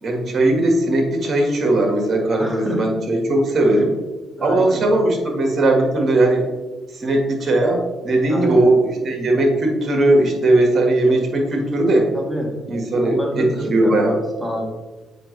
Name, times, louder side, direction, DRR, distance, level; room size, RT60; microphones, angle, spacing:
voice 1, 0.0-3.9 4.4-6.4 6.9-12.1 12.7-14.1, right 2 dB, 45° right, 3 dB, 1.6 m, -18 dB
voice 2, 2.4-2.8 3.6-3.7 4.4-4.8 8.3-8.7 12.1-12.5 13.0-14.6, equal, ahead, 0 dB, 1.6 m, -28 dB
7.4 x 5.0 x 3.2 m, 1.2 s
cardioid pair, 90°, 0 cm